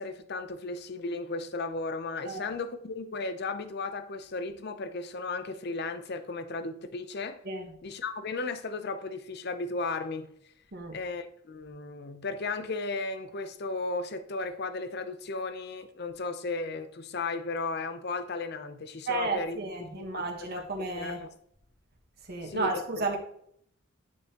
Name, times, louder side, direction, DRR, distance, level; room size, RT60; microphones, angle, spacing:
voice 1, 0.0-7.4 7.8-10.3 10.9-19.6 20.0-20.3 20.6-20.7 21.0-21.3 22.4-22.8, left 3 dB, 50° left, 0.6 m, -35 dB
voice 2, 19.1-21.2 22.3-23.2, right 2 dB, 50° right, 1.3 m, -32 dB
9.4 x 5.4 x 2.9 m
head